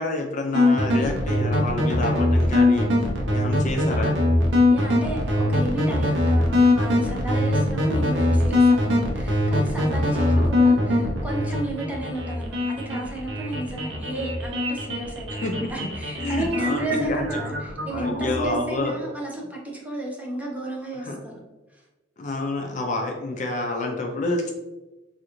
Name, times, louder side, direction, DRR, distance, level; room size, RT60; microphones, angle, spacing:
voice 1, 0.0-2.9 3.3-4.2 10.1-10.5 15.4-15.7 16.2-17.3 17.9-19.0 21.1-21.2 22.2-24.5, left 2 dB, 40° left, 2 dB, 0.4 m, -28 dB
sound 1, 0.5-18.6, left 1 dB, 85° right, 0.6 m, -22 dB
voice 2, 4.7-21.4 21.7-21.8, right 2 dB, 10° right, -3 dB, 0.6 m, -33 dB
3.7 x 2.4 x 2.9 m, 1.1 s
head